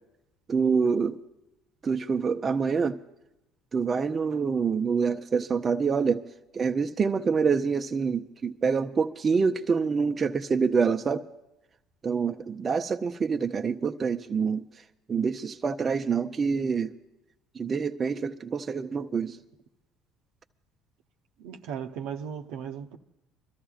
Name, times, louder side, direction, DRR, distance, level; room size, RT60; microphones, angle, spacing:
voice 1, 0.5-1.2 1.8-3.0 3.7-6.2 6.5-11.2 12.0-14.6 15.1-16.9 17.6-19.3, right 5 dB, 35° right, 0.7 m, -26 dB
voice 2, 21.4-23.0, right 8 dB, 75° right, 0.8 m, -36 dB
26.5 x 13.5 x 2.4 m
hypercardioid pair, 70°, 0 cm